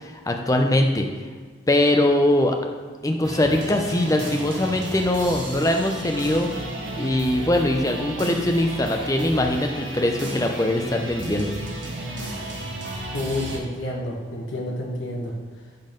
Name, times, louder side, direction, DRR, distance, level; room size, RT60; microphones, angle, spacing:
voice 1, 0.3-1.1 1.7-2.6 3.0-6.5 7.0-11.5, left 1 dB, 20° left, 4 dB, 0.5 m, -21 dB
sound 1, 3.2-13.6, right 1 dB, 70° right, 1.4 m, -33 dB
voice 2, 13.1-15.3, left 1 dB, 75° left, -1 dB, 1.1 m, -29 dB
7.4 x 3.9 x 5.1 m, 1.5 s
head